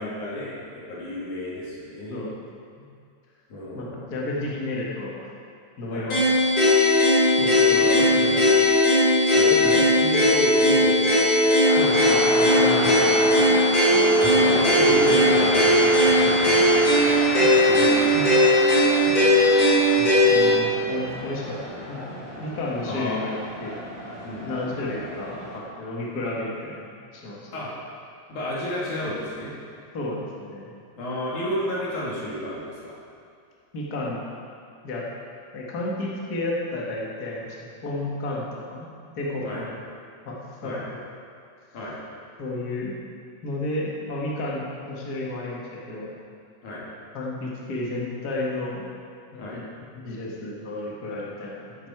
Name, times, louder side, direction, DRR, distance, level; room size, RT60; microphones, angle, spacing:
voice 1, 0.0-2.2 3.5-4.0 5.9-6.1 7.8-8.5 9.3-11.5 14.4-15.8 17.3-18.1 22.8-23.2 24.2-24.5 27.5-27.7 28.3-29.5 30.9-32.9 39.4-39.6 40.6-40.8 41.7-42.0 46.6-46.8 49.4-49.6, left 1 dB, 80° left, -7 dB, 4.3 m, -31 dB
voice 2, 3.7-5.3 5.8-6.2 7.4-8.3 9.6-9.8 11.8-13.6 13.9-14.1 16.2-16.7 18.1-18.2 19.1-19.2 19.5-19.6 20.0-21.6 21.9-23.8 24.4-27.4 29.9-30.7 33.7-34.3 34.8-35.0 35.5-38.9 39.2-39.7 40.3-40.4 40.6-40.7 42.4-42.9 43.4-45.6 45.9-46.1 47.1-48.8 49.3-49.6 49.9-51.7, left 2 dB, 35° left, -4 dB, 2.0 m, -32 dB
sound 1, 6.1-20.5, left 1 dB, 55° left, 4.9 m, -18 dB
sound 2, 11.6-25.6, equal, 5° left, 2.6 m, -30 dB
14.0 x 10.5 x 4.7 m, 2.3 s
omnidirectional pair, 3.4 m